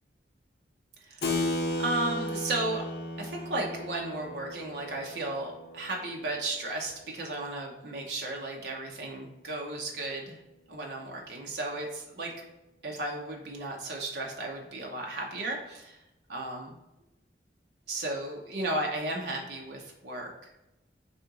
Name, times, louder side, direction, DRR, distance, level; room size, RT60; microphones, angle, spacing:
voice 1, 1.1-1.4 1.8-2.8 3.2-10.4 10.7-12.3 12.8-16.0 16.3-16.8 17.9-20.3, right 2 dB, 65° right, -1 dB, 0.7 m, -34 dB
Keyboard (musical), 1.2-7.2, left 1 dB, 60° left, 0.7 m, -35 dB
4.2 x 2.9 x 3.6 m, 0.92 s
head